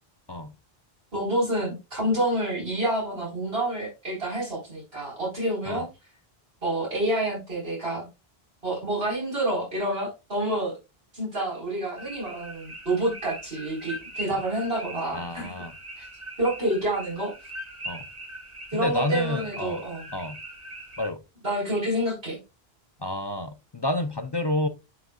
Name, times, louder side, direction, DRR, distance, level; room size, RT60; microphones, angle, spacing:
voice 1, 1.1-5.9 6.6-8.0 8.6-10.7 11.1-15.5 16.0-16.1 16.4-17.3 18.7-20.0 21.4-22.4, right 1 dB, 70° right, 4.4 m, -28 dB
sound 1, 12.0-21.1, right 1 dB, 30° right, 1.4 m, -41 dB
voice 2, 15.1-15.8 17.9-18.1 18.7-19.8 20.1-20.4 21.0-21.2 23.0-24.7, left 1 dB, 35° left, 0.5 m, -29 dB
11.5 x 3.9 x 2.3 m
omnidirectional pair, 1.0 m